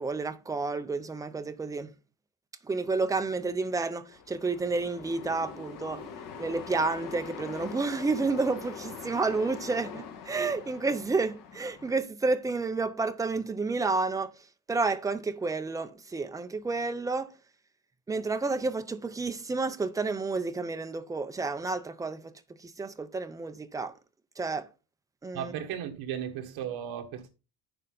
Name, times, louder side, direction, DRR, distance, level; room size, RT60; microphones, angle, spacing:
voice 1, 0.0-1.9 2.7-6.0 6.4-14.3 14.7-17.3 18.1-22.3 22.6-23.9 24.4-24.7 25.2-25.5, right 3 dB, 10° right, 0.3 m, -30 dB
sound 1, 4.1-12.0, left 6 dB, 55° left, 1.6 m, -43 dB
voice 2, 25.3-27.3, right 9 dB, 75° right, 1.6 m, -35 dB
8.5 x 6.8 x 3.8 m
cardioid pair, 180°, 38 cm